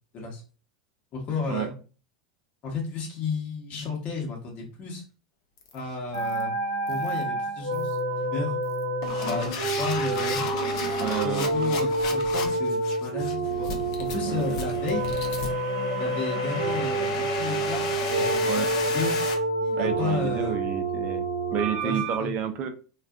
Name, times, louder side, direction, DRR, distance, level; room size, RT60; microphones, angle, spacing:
voice 1, 1.1-1.7 2.6-5.0 5.7-6.5 6.9-8.5 9.3-10.5 11.2-13.7 14.1-15.1 16.0-19.2 19.6-20.6 21.8-22.3, left 4 dB, 40° left, 0 dB, 0.9 m, -33 dB
sound 1, 5.6-5.8 6.1-6.4 6.9-7.2 7.7-8.0 8.6-19.3, left 5 dB, 60° left, 0.6 m, -34 dB
sound 2, 6.1-22.2, right 2 dB, 80° right, 0.7 m, -28 dB
voice 2, 11.0-11.5 14.3-14.4 18.5-18.7 19.8-21.2 21.5-22.7, right 8 dB, 45° right, 6 dB, 0.5 m, -30 dB
2.5 x 2.3 x 2.3 m, 0.36 s
hypercardioid pair, 90°, 4 cm